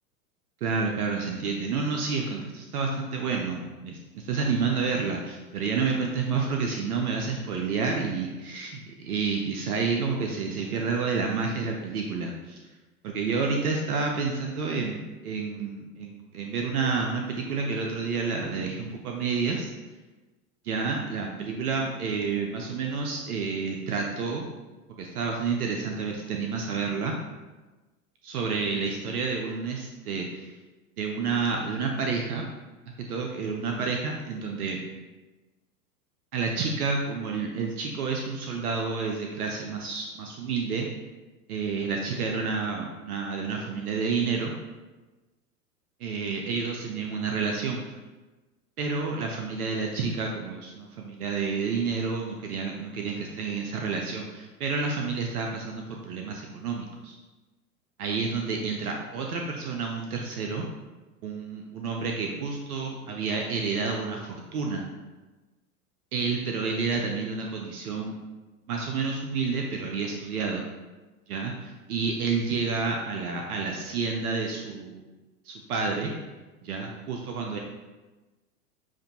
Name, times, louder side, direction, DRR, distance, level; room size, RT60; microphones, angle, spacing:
voice 1, 0.6-8.7 9.0-12.6 13.0-19.7 20.6-24.5 25.0-27.1 28.2-30.5 31.0-32.5 33.1-34.8 36.3-40.9 41.5-44.5 46.0-47.8 48.8-57.2 58.0-60.7 61.2-64.9 66.1-68.1 68.7-70.6 71.3-75.0 75.4-76.1 76.6-77.6, right 4 dB, 75° right, 1 dB, 0.7 m, -29 dB
7.3 x 2.6 x 2.8 m, 1.2 s
hypercardioid pair, 95°, 45 cm